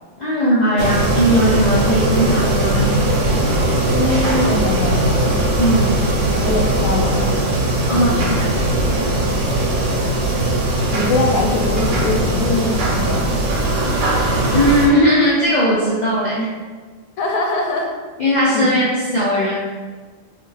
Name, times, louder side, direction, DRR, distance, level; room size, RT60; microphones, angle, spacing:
voice 1, 0.2-2.9 5.6-5.9 7.8-8.5 14.5-16.5 18.2-19.5, equal, 65° left, -9 dB, 0.4 m, -18 dB
sound 1, 0.8-14.9, right 1 dB, 90° right, 1.0 m, -19 dB
voice 2, 3.9-5.5 6.3-7.3 7.9-8.4 10.9-13.4 17.2-17.9 18.5-18.7, left 2 dB, 90° left, 0 dB, 1.0 m, -22 dB
2.4 x 2.4 x 3.0 m, 1.4 s
omnidirectional pair, 1.4 m